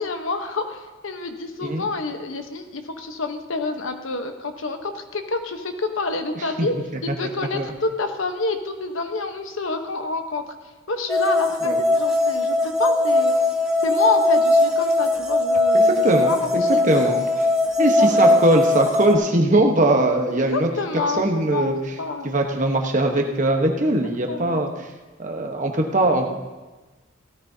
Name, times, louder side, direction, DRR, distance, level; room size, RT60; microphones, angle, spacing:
voice 1, 0.0-6.7 7.0-10.4 10.9-13.3 13.8-17.2 17.8-18.4 20.5-22.4 24.3-24.7, left 3 dB, 75° left, 6 dB, 1.0 m, -28 dB
sound 1, 11.1-19.1, left 2 dB, 5° right, 1.1 m, -20 dB
voice 2, 15.7-17.2 17.8-20.7 21.2-21.7 22.2-24.7 25.2-26.3, right 1 dB, 40° right, 3 dB, 1.1 m, -20 dB
16.5 x 13.5 x 2.8 m, 1.2 s
head